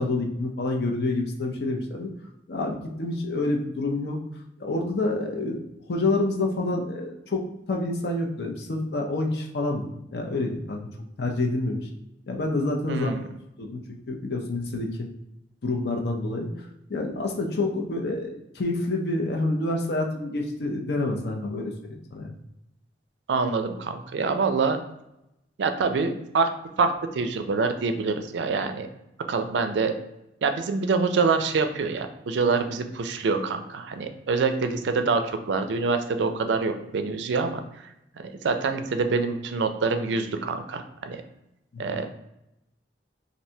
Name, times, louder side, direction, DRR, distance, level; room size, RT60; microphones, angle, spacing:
voice 1, 0.0-2.1 2.5-4.2 4.6-5.6 5.9-10.8 11.2-11.9 12.3-13.1 13.6-13.8 14.1-14.9 15.6-16.5 16.9-22.3 41.7-42.0, left 2 dB, 65° left, 1 dB, 0.5 m, -28 dB
voice 2, 12.9-13.2 23.3-24.8 25.6-26.5 26.8-28.9 29.3-29.9 30.4-37.6 38.2-41.2 41.8-42.1, right 4 dB, 80° right, 8 dB, 0.4 m, -25 dB
3.2 x 2.6 x 2.7 m, 0.88 s
head